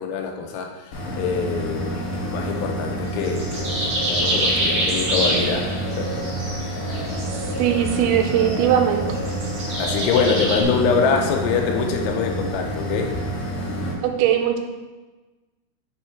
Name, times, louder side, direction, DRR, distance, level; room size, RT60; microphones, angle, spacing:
voice 1, 0.0-6.2 6.6-7.1 9.8-13.1, left 5 dB, 85° left, 3 dB, 2.9 m, -25 dB
sound 1, 0.9-13.9, right 1 dB, 65° left, 3.0 m, -29 dB
sound 2, 1.8-10.6, right 1 dB, 50° right, 1.5 m, -27 dB
voice 2, 7.6-9.0 14.0-14.6, right 10 dB, 80° right, 4 dB, 2.4 m, -19 dB
6.0 x 4.6 x 4.4 m, 1.2 s
omnidirectional pair, 4.7 m